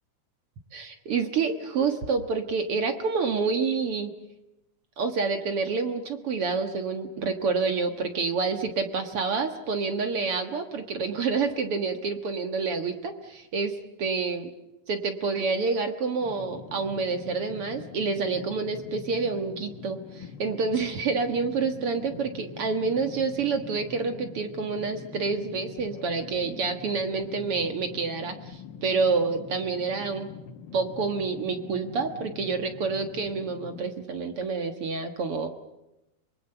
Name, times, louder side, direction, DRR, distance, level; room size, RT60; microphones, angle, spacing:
voice 1, 0.7-4.1 5.0-14.5 14.9-30.3 30.7-35.5, right 4 dB, 50° right, 7 dB, 2.1 m, -28 dB
sound 1, 16.2-33.9, left 7 dB, 75° left, 1.0 m, -44 dB
25.0 x 23.5 x 6.9 m, 0.93 s
omnidirectional pair, 3.7 m